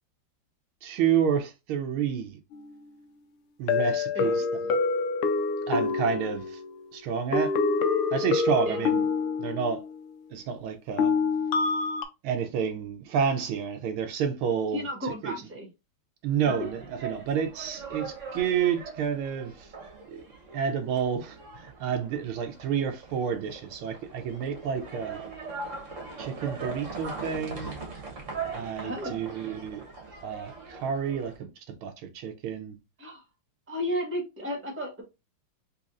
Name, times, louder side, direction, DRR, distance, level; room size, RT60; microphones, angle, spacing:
voice 1, 0.8-2.4 3.6-4.8 5.7-6.6 6.9-7.5 8.1-9.0 9.4-9.8 10.3-11.1 12.2-15.3 16.2-19.7 20.1-20.2 20.5-25.2 26.2-27.8 28.5-29.9 30.2-32.8, right 7 dB, 75° right, 1.5 m, -30 dB
sound 1, 2.5-2.6 3.7-6.8 7.3-9.9 11.0-12.1, left 4 dB, 85° left, 1.6 m, -26 dB
voice 2, 14.7-15.7 28.8-29.2 33.0-33.2 33.7-35.0, equal, 5° right, 1.1 m, -33 dB
sound 2, 16.3-31.4, right 4 dB, 45° right, 1.2 m, -41 dB
4.0 x 3.3 x 2.5 m
omnidirectional pair, 2.4 m